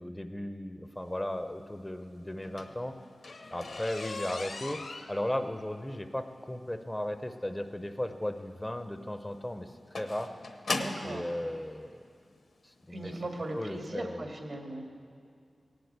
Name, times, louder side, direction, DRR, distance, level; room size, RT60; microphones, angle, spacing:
voice 1, 0.0-3.0 3.5-4.8 5.1-10.3 11.0-12.0 12.6-13.1 13.5-14.2, left 1 dB, 10° left, 8 dB, 0.6 m, -36 dB
sound 1, 2.3-11.2 12.1-12.2 12.7-13.0 13.2-13.3 13.7-13.8, left 3 dB, 70° left, 1.0 m, -39 dB
voice 2, 10.7-11.3 12.9-14.8, right 2 dB, 65° right, 3 dB, 2.0 m, -38 dB
17.0 x 7.9 x 8.2 m, 2.3 s
wide cardioid pair, 75°, 0 cm